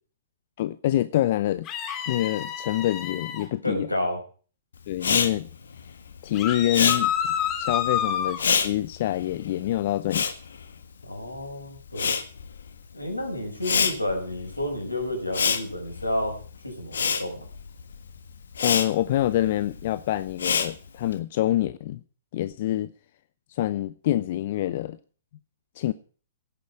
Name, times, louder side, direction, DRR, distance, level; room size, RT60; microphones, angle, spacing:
voice 1, 0.6-1.7 2.1-3.9 4.9-5.5 6.2-10.3 18.6-22.0 22.3-22.9 23.5-25.0 25.8-25.9, left 13 dB, 45° left, 0.6 m, -26 dB
sound 1, 1.7-3.5 6.3-8.4, left 9 dB, 25° left, 2.9 m, -28 dB
voice 2, 3.6-4.2 11.0-12.1 12.9-16.4 16.6-17.4, left 1 dB, 90° left, 5.7 m, -30 dB
Respiratory sounds, 4.9-11.4 11.7-21.1, left 6 dB, 65° left, 1.5 m, -28 dB
17.0 x 9.6 x 4.8 m
figure-of-eight pair, 115°, 0 cm